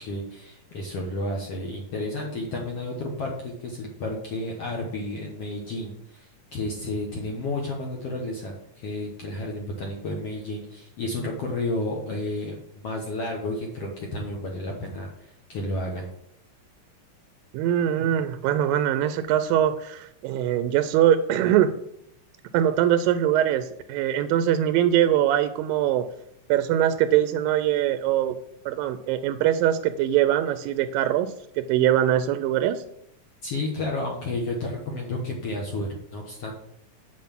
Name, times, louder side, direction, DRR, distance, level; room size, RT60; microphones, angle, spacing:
voice 1, 0.0-16.1 33.4-36.5, left 2 dB, 55° left, -1 dB, 1.8 m, -31 dB
voice 2, 17.5-21.7 22.5-26.0 26.5-28.4 28.7-32.8, right 11 dB, 90° right, 11 dB, 2.3 m, -22 dB
7.7 x 7.4 x 5.8 m, 0.73 s
omnidirectional pair, 3.9 m